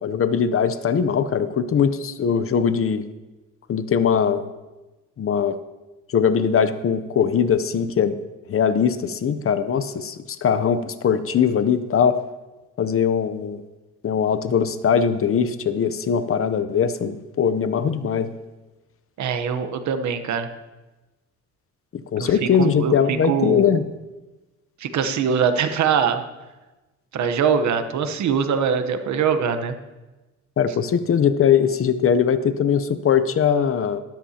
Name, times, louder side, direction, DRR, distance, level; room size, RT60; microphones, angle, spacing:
voice 1, 0.0-3.0 3.7-4.5 5.2-5.6 6.1-8.2 8.5-12.2 12.8-13.6 14.0-18.3 21.9-23.8 30.6-34.0, left 7 dB, 45° left, 12 dB, 0.8 m, -21 dB
voice 2, 19.2-20.5 22.2-23.7 24.8-26.2 27.1-29.8, right 6 dB, 70° right, 9 dB, 1.1 m, -23 dB
13.0 x 12.5 x 2.9 m, 1.1 s
cardioid pair, 90°, 30 cm